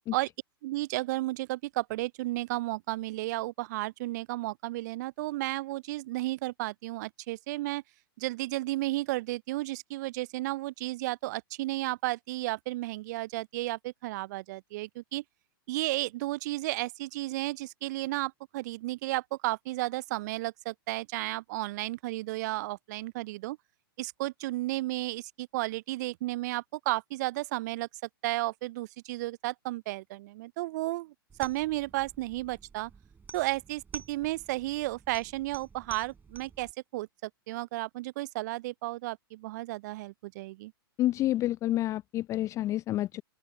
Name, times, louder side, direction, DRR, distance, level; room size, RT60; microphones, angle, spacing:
voice 1, 0.6-7.8 8.2-15.2 15.7-23.6 24.0-27.9 28.2-31.1 31.4-32.9 33.3-40.7, right 19 dB, 50° right, 0.4 m, -33 dB
sound 1, 31.3-36.7, right 5 dB, 15° right, 5.9 m, -50 dB
voice 2, 41.0-43.2, left 14 dB, 25° left, 0.4 m, -29 dB
open air
figure-of-eight pair, 105°, 12 cm